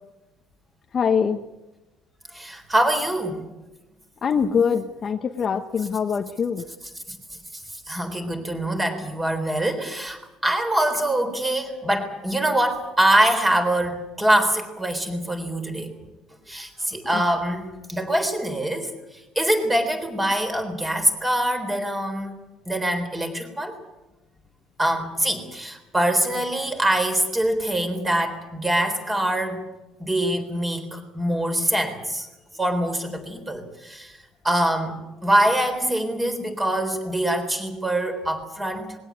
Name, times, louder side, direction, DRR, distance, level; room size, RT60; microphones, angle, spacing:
voice 1, 0.9-1.4 4.2-6.6 17.1-17.2, left 6 dB, 30° left, 6 dB, 1.0 m, -23 dB
voice 2, 2.3-3.5 7.1-7.2 7.5-15.9 16.5-22.3 22.7-23.8 24.8-29.6 30.0-32.3 32.6-34.2 34.4-39.0, right 1 dB, 10° right, 6 dB, 3.8 m, -24 dB
21.0 x 17.0 x 9.6 m, 1.0 s
cardioid pair, 150°, 0 cm